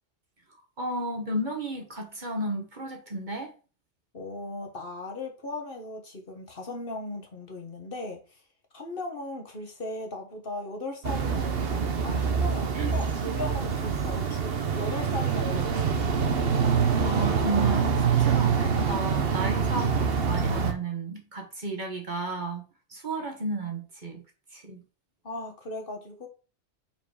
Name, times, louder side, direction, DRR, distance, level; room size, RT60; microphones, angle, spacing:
voice 1, 0.8-3.5 12.7-12.9 17.0-22.6 22.9-24.2 24.5-24.8, right 2 dB, 45° right, 1.4 m, -33 dB
voice 2, 4.1-8.4 8.7-15.7 25.2-26.3, left 2 dB, 50° left, 1.6 m, -37 dB
sound 1, 11.0-20.7, right 6 dB, 60° right, 1.1 m, -25 dB
5.3 x 4.9 x 4.9 m
omnidirectional pair, 1.2 m